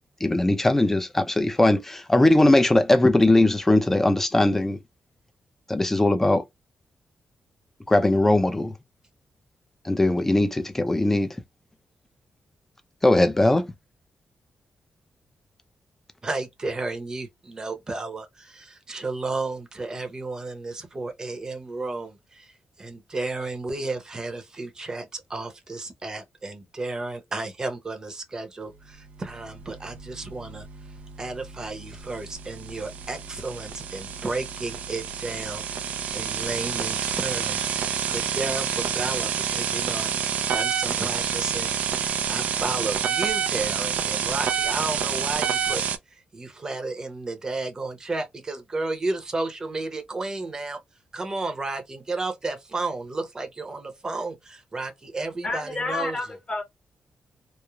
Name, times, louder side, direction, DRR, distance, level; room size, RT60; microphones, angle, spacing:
voice 1, 0.2-4.8 5.7-6.4 7.9-8.7 9.8-11.3 13.0-13.7, left 1 dB, 15° left, 0.5 m, -20 dB
voice 2, 16.2-22.5 22.8-30.7 31.2-35.6 36.1-45.8 46.1-50.8 51.1-56.2, right 3 dB, 25° right, 0.8 m, -33 dB
sound 1, 29.1-46.0, right 8 dB, 85° right, 0.4 m, -29 dB
voice 3, 55.4-56.6, left 3 dB, 35° left, 0.9 m, -29 dB
3.1 x 2.0 x 2.3 m
wide cardioid pair, 135°, 3 cm